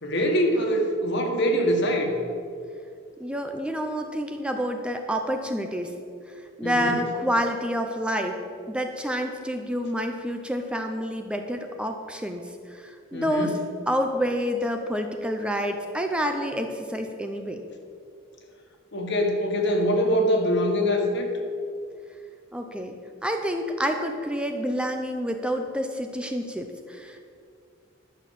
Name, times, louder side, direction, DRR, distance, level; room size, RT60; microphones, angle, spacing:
voice 1, 0.0-2.2 6.6-7.0 13.1-13.5 18.9-21.3, equal, 60° left, 3 dB, 1.6 m, -24 dB
voice 2, 3.2-5.9 6.6-8.4 8.7-13.5 13.9-17.6 22.5-22.9 23.2-27.3, equal, 5° right, 4 dB, 0.6 m, -28 dB
11.5 x 6.4 x 7.4 m, 2.3 s
head